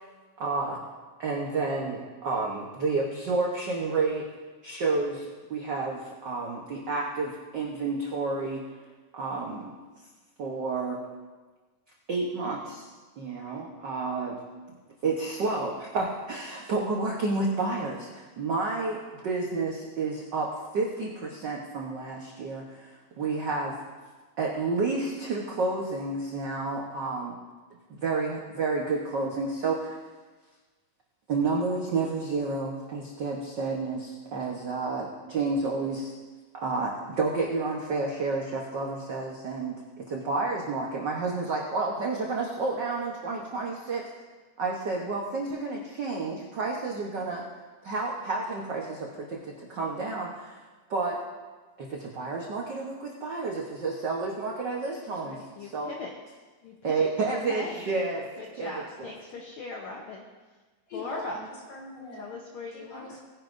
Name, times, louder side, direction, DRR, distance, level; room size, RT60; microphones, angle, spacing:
voice 1, 0.4-0.8 1.2-4.3 4.6-8.7 9.1-9.7 10.4-11.0 12.1-12.9 13.2-14.4 15.0-23.7 24.4-27.3 27.9-30.0 31.3-36.1 36.5-44.1 44.6-47.4 47.8-50.6 50.9-51.2 51.8-55.9 56.8-58.3 58.6-58.7 59.0-59.1, right 3 dB, 75° right, -2 dB, 1.0 m, -30 dB
voice 2, 55.2-56.1 56.6-57.8 58.4-60.2 60.9-61.4 62.2-63.2, left 3 dB, 70° left, -1 dB, 1.2 m, -39 dB
voice 3, 60.9-62.3 62.7-63.2, left 2 dB, 50° left, -4 dB, 4.1 m, -42 dB
19.0 x 10.5 x 2.6 m, 1.3 s
omnidirectional pair, 3.6 m